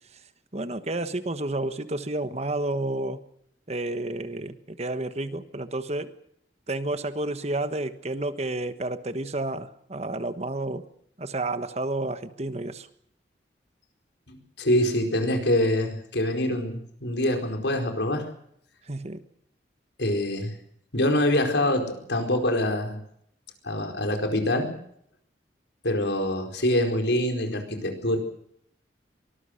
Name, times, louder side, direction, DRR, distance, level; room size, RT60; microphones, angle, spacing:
voice 1, 0.5-3.2 3.7-6.2 6.7-10.9 11.2-12.9 18.9-19.2, right 2 dB, 35° right, 11 dB, 1.3 m, -30 dB
voice 2, 14.3-18.3 20.0-20.5 20.9-23.0 23.6-24.8 25.8-28.2, left 1 dB, 80° left, 5 dB, 4.6 m, -25 dB
24.0 x 19.5 x 6.6 m, 0.69 s
head